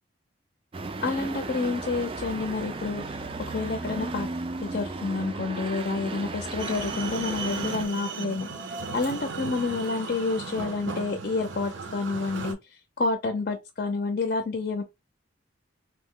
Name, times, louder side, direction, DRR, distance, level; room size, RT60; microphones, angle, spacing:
sound 1, 0.7-7.8, right 3 dB, 30° right, 0.3 m, -35 dB
voice 1, 1.0-3.2 3.5-4.3 4.6-8.5 8.9-12.6 13.0-14.8, left 3 dB, 50° left, 0.5 m, -29 dB
sound 2, 6.6-12.5, right 4 dB, 75° right, 0.7 m, -36 dB
3.0 x 2.0 x 3.6 m
head